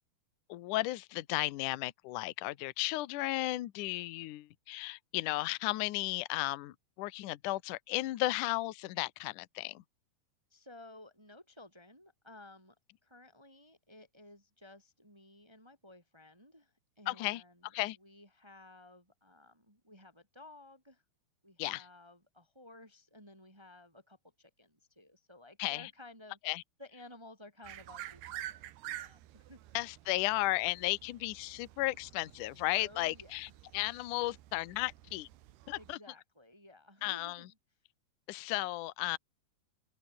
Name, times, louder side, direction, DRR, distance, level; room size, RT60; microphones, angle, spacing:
voice 1, 0.5-9.8 17.1-18.0 21.6-21.9 25.6-25.9 26.4-26.6 29.7-35.3 35.7-36.0 37.0-37.5 38.3-39.2, left 19 dB, 70° left, 2.1 m, -34 dB
voice 2, 10.5-12.8 13.0-17.7 18.0-21.0 21.4-26.4 26.8-29.6 32.8-33.4 35.7-37.5, left 2 dB, 5° right, 3.9 m, -55 dB
sound 1, 27.6-35.9, right 14 dB, 75° right, 3.2 m, -49 dB
open air
omnidirectional pair, 4.6 m